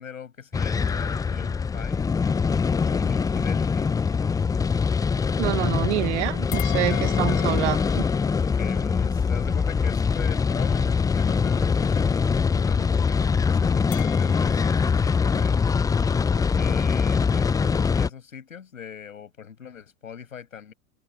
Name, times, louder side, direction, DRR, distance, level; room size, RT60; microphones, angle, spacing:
voice 1, 0.0-2.0 2.7-3.9 6.6-7.6 8.4-15.8 16.6-20.7, left 7 dB, 90° left, 6.7 m, -41 dB
sound 1, 0.5-18.1, left 5 dB, 10° left, 0.5 m, -23 dB
voice 2, 5.4-8.0, right 19 dB, 60° right, 0.9 m, -27 dB
sound 2, 6.5-11.0 13.9-16.4, left 26 dB, 50° left, 7.3 m, -41 dB
open air
hypercardioid pair, 100°, 39 cm